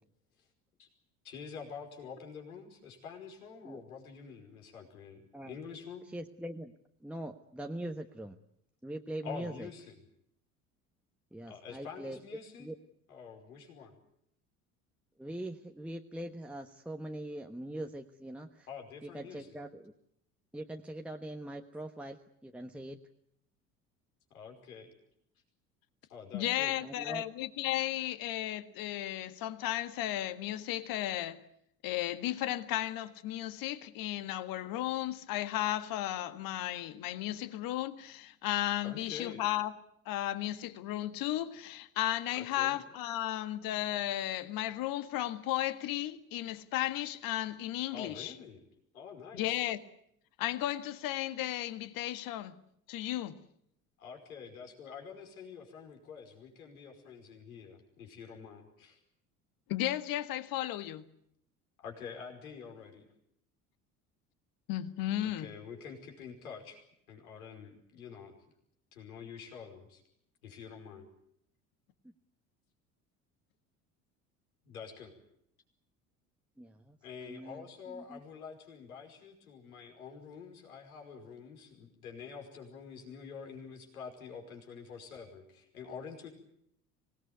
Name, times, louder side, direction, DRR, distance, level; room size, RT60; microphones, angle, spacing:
voice 1, 1.2-6.1 9.2-9.9 11.4-12.7 13.1-13.9 18.7-19.5 24.3-24.9 26.1-26.8 38.8-39.4 42.3-42.8 47.9-48.6 48.9-49.6 54.0-59.0 61.8-63.1 65.2-66.8 67.1-68.4 68.9-70.0 70.4-71.1 74.6-75.1 77.0-86.3, left 6 dB, 75° left, 5.3 m, -47 dB
voice 2, 6.1-6.7 7.0-8.4 8.8-9.7 11.3-12.2 12.6-12.7 15.2-18.7 19.0-19.9 20.5-23.0 26.8-27.2 72.0-72.1 76.6-78.2, right 1 dB, 5° right, 1.3 m, -42 dB
voice 3, 26.3-31.4 31.8-39.7 40.1-48.3 49.3-49.8 50.4-52.6 52.9-53.4 59.7-61.1 64.7-65.5, left 14 dB, 50° left, 1.8 m, -34 dB
26.0 x 19.0 x 9.5 m
figure-of-eight pair, 65°, 44 cm